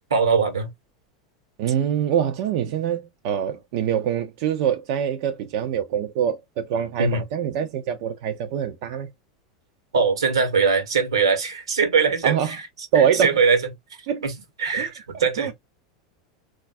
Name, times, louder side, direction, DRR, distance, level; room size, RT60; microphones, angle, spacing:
voice 1, 0.1-0.7 7.0-7.2 9.9-12.6 12.9-13.6 14.2-14.3 14.6-15.5, right 5 dB, 80° right, 1.1 m, -21 dB
voice 2, 1.6-9.1 12.2-12.6 12.9-13.4 14.1-14.2 14.8-15.5, right 8 dB, 55° right, 0.5 m, -24 dB
3.8 x 2.4 x 2.5 m
hypercardioid pair, 90°, 3 cm